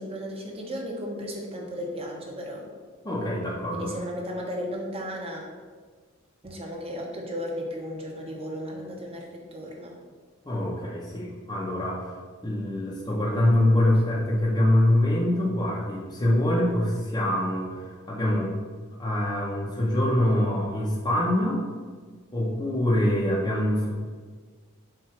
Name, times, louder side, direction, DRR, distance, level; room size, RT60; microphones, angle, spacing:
voice 1, 0.0-2.7 3.7-5.5 6.4-9.9, equal, 30° right, -1 dB, 1.2 m, -35 dB
voice 2, 3.0-3.9 10.4-12.0 12.4-18.6 19.0-21.6 22.3-23.9, left 1 dB, 20° left, -5 dB, 0.9 m, -24 dB
7.5 x 2.7 x 5.8 m, 1.5 s
head